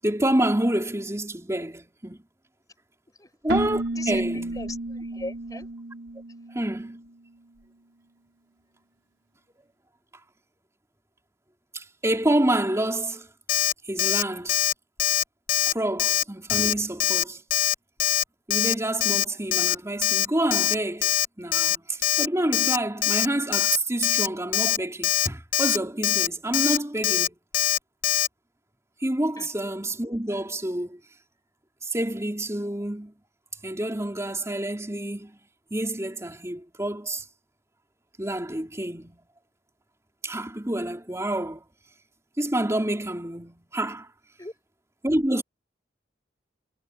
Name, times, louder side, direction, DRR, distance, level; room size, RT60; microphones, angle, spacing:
voice 1, 0.0-2.2 3.4-4.6 6.5-7.0 11.7-13.3 13.8-14.6 15.7-17.4 18.5-27.4 29.0-31.0 31.8-33.1 33.6-35.4 35.7-37.2 38.2-39.2 40.2-41.6 42.4-44.1 45.0-45.4, right 1 dB, 15° right, 3.3 m, -28 dB
Keyboard (musical), 3.5-7.1, right 2 dB, 75° right, 4.4 m, -32 dB
voice 2, 3.9-5.7 29.4-29.5 44.4-44.5, left 2 dB, 20° left, 4.8 m, -39 dB
Alarm, 13.5-13.7 14.0-14.2 14.5-14.7 15.0-15.2 15.5-15.7 16.0-16.2 16.5-16.7 17.0-17.2 17.5-17.7 18.0-18.2 18.5-18.7 19.0-19.2 19.5-19.7 20.0-20.2 20.5-20.7 21.0-21.2 21.5-21.8 22.0-22.3 22.5-22.8 23.0-23.3 23.5-23.8 24.0-24.3 24.5-24.8 25.0-25.3 25.5-25.8 26.0-26.3 26.5-26.8 27.0-27.3 27.5-27.8 28.0-28.3, left 11 dB, 50° left, 0.9 m, -22 dB
head